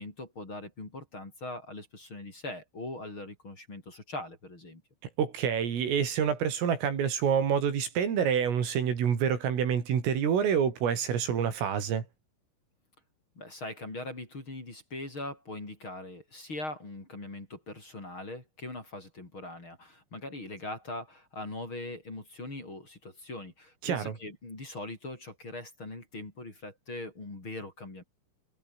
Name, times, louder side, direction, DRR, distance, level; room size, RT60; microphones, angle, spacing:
voice 1, 0.0-4.8 13.4-28.0, left 2 dB, 25° left, 6.0 m, -41 dB
voice 2, 5.2-12.0 23.8-24.1, right 8 dB, 75° right, 6.6 m, -27 dB
omnidirectional pair, 6.0 m